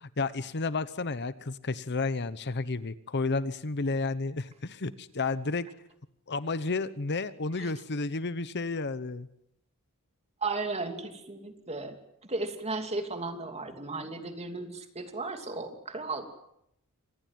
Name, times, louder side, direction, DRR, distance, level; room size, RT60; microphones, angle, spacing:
voice 1, 0.0-5.7 6.3-9.3, left 3 dB, 50° left, 14 dB, 1.0 m, -31 dB
voice 2, 10.4-12.0 12.3-16.3, right 3 dB, 30° right, 6 dB, 2.9 m, -35 dB
26.0 x 19.5 x 7.6 m, 0.80 s
head